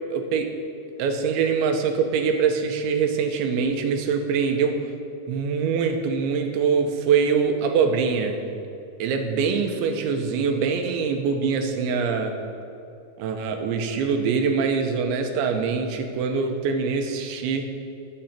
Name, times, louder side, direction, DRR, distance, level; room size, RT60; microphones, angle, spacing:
voice 1, 0.1-0.5 1.0-4.8 5.3-8.5 9.0-12.4 13.2-17.7, right 5 dB, 75° right, 5 dB, 3.0 m, -24 dB
22.0 x 8.1 x 4.4 m, 2.8 s
omnidirectional pair, 5.8 m